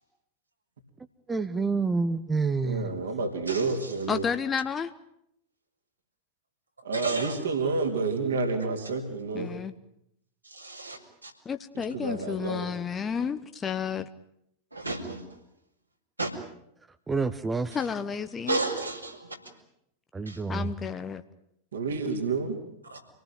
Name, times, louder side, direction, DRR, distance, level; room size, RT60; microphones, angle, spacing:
voice 1, 1.3-3.0 17.1-17.8 20.1-20.7, right 4 dB, 15° right, 9 dB, 1.1 m, -28 dB
voice 2, 2.6-4.2 6.8-9.6 11.7-12.7 21.7-22.6, right 4 dB, 65° right, 4 dB, 3.6 m, -29 dB
voice 3, 4.1-4.9 9.3-9.7 11.4-14.1 17.7-18.6 20.5-21.2, left 6 dB, 20° left, 9 dB, 1.1 m, -31 dB
voice 4, 6.9-7.4 10.5-11.3 14.7-15.2 16.2-16.3 18.5-19.4 20.3-20.4 22.9-23.0, right 2 dB, 85° right, 1 dB, 5.1 m, -32 dB
27.5 x 19.0 x 9.2 m, 0.76 s
figure-of-eight pair, 90°, 0 cm